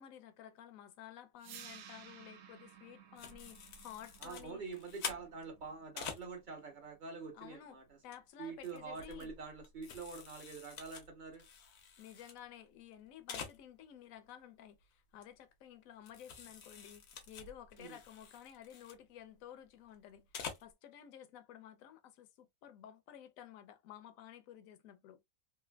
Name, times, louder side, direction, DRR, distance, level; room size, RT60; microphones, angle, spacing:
voice 1, 0.0-4.6 7.3-7.8 8.0-9.3 12.0-20.3 20.6-25.2, left 10 dB, 70° left, 0.9 m, -53 dB
sound 1, 1.4-7.4, right 8 dB, 85° right, 1.1 m, -57 dB
sound 2, 3.2-6.2 7.9-8.2 8.6-12.4 12.7-12.8 12.9-13.0 13.3-13.6 15.2-15.3 16.0-19.0 20.1-20.7, left 6 dB, 90° left, 1.3 m, -48 dB
voice 2, 4.2-8.0 8.4-11.5 17.8-18.0, right 4 dB, 40° right, 0.8 m, -46 dB
3.3 x 2.5 x 2.2 m
omnidirectional pair, 1.6 m